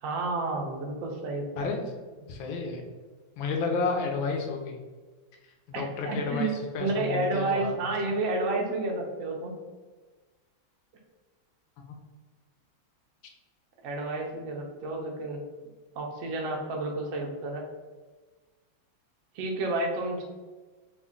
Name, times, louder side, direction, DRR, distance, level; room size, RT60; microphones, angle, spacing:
voice 1, 0.0-1.7 3.6-3.8 5.7-6.5 6.8-9.5 13.8-15.4 15.9-17.6 19.3-20.2, right 2 dB, 75° right, 0 dB, 0.7 m, -30 dB
voice 2, 2.3-2.8 3.4-4.8 5.7-7.9 11.8-12.0, left 4 dB, 80° left, 2 dB, 1.4 m, -31 dB
3.7 x 2.2 x 3.6 m, 1.3 s
omnidirectional pair, 2.2 m